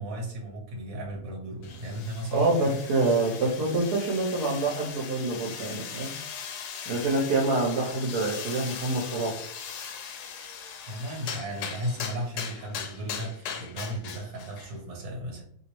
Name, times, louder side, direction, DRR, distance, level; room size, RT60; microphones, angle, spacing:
voice 1, 0.0-2.7 10.8-15.4, equal, 60° right, 0 dB, 1.4 m, -35 dB
sound 1, 1.6-14.8, left 7 dB, 85° left, 1.1 m, -39 dB
voice 2, 2.3-6.1 6.9-9.4, right 2 dB, 85° right, -1 dB, 1.3 m, -26 dB
3.1 x 2.9 x 3.0 m, 0.62 s
omnidirectional pair, 1.7 m